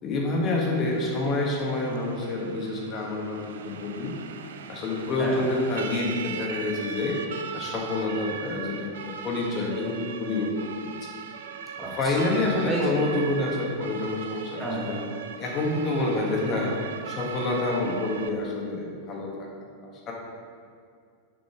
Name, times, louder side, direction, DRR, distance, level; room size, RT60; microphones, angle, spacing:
voice 1, 0.0-4.1 4.7-7.2 7.5-10.9 11.8-15.0 15.4-16.7 17.0-19.3 19.8-20.1, left 2 dB, 30° left, -1 dB, 1.5 m, -28 dB
Siren, 0.6-18.3, right 6 dB, 60° right, 0.4 m, -39 dB
voice 2, 11.8-13.0 14.6-15.0, right 1 dB, ahead, -5 dB, 1.5 m, -32 dB
6.2 x 6.0 x 4.8 m, 2.2 s
figure-of-eight pair, 90°, 0 cm